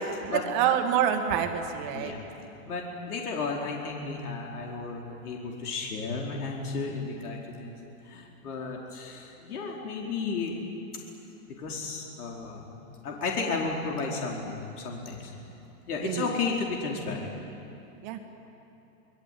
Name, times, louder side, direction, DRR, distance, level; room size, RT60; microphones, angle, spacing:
voice 1, 0.2-2.1 16.0-16.3 18.0-18.2, right 9 dB, 35° right, 6 dB, 1.9 m, -27 dB
voice 2, 2.6-7.7 8.0-10.6 11.6-12.7 13.0-15.3 15.9-17.3, left 4 dB, 80° left, -1 dB, 4.6 m, -33 dB
26.5 x 22.0 x 9.4 m, 2.8 s
supercardioid pair, 170°, 45 cm